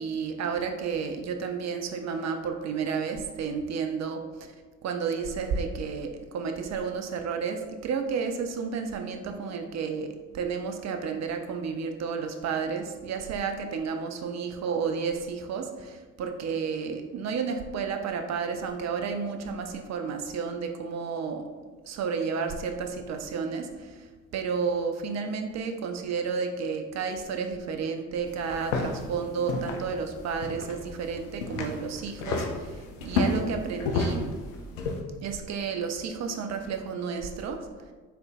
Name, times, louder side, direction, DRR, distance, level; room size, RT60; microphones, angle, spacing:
voice 1, 0.0-4.5 4.8-21.5 21.8-34.3 35.2-37.7, right 5 dB, 45° right, 5 dB, 0.6 m, -31 dB
sound 1, 28.3-35.0, left 3 dB, 80° left, 0.6 m, -32 dB
4.4 x 3.8 x 2.3 m, 1.3 s
hypercardioid pair, 45°, 39 cm